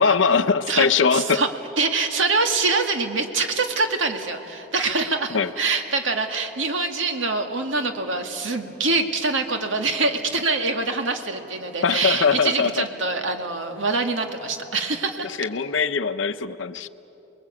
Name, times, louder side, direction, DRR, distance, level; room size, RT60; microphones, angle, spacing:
voice 1, 0.0-1.4 5.3-5.5 11.8-12.8 15.2-16.9, left 5 dB, 80° left, 9 dB, 0.7 m, -21 dB
voice 2, 0.7-1.5 1.8-15.3, right 3 dB, 85° right, 4 dB, 2.0 m, -24 dB
29.5 x 21.0 x 8.5 m, 2.9 s
head